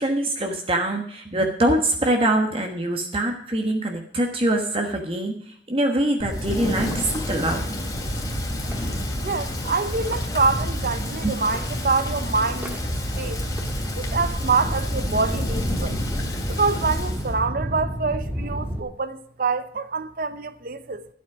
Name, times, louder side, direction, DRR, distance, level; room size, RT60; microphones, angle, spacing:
voice 1, 0.0-7.8 11.0-11.3, right 1 dB, 30° right, 1.3 m, -24 dB
sound 1, 6.2-18.8, equal, 10° right, 1.8 m, -30 dB
Thunder / Rain, 6.3-17.3, left 1 dB, 20° left, 2.8 m, -32 dB
voice 2, 9.2-12.9 13.2-13.4 14.0-15.9 16.5-21.1, right 4 dB, 50° right, 0.7 m, -25 dB
12.5 x 8.4 x 6.1 m
head